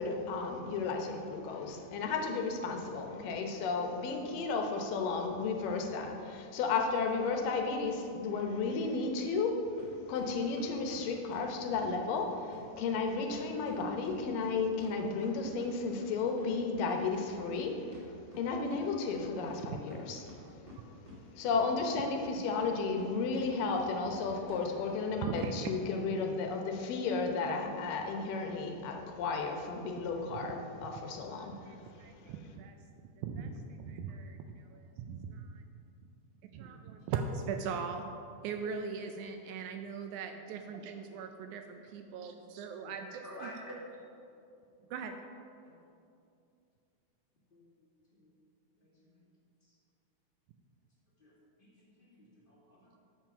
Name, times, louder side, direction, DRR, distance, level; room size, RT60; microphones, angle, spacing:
voice 1, 0.0-9.6 10.1-17.8 18.4-20.2 21.4-31.5, left 4 dB, 85° left, 3 dB, 2.6 m, -33 dB
sound 1, 9.8-9.9 10.2-11.9 12.1-12.2 12.5-12.6 12.9-13.0 13.3-15.7 16.0-18.8 19.1-19.2 19.5-20.4 20.7-21.6 21.8-23.5 23.7-24.2 24.5-24.6 24.9-25.0 25.4-25.5 25.8-26.0, left 3 dB, 30° right, 1.0 m, -50 dB
voice 2, 20.1-20.8 22.4-22.5 25.2-25.7 30.3-30.5 31.2-32.8 33.2-35.6 36.5-38.1 38.4-43.5 44.9-45.2, right 6 dB, 80° right, 5 dB, 1.8 m, -40 dB
voice 3, 43.2-43.8 45.6-45.7 47.5-47.6 48.2-48.3 51.2-51.3 51.6-53.0, left 1 dB, 30° left, -6 dB, 0.9 m, -49 dB
7.4 x 7.4 x 5.8 m, 2.6 s
omnidirectional pair, 3.8 m